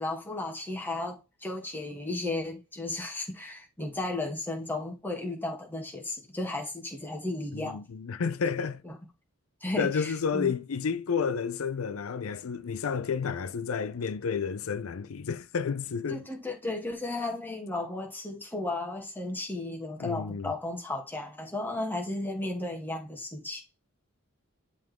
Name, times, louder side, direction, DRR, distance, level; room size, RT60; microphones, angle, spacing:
voice 1, 0.0-7.8 8.8-8.9 9.6-10.5 16.1-23.6, left 2 dB, 10° left, 1.9 m, -34 dB
voice 2, 7.5-8.8 9.8-16.2 20.0-20.5, left 6 dB, 80° left, 0.5 m, -31 dB
10.5 x 3.9 x 3.6 m
head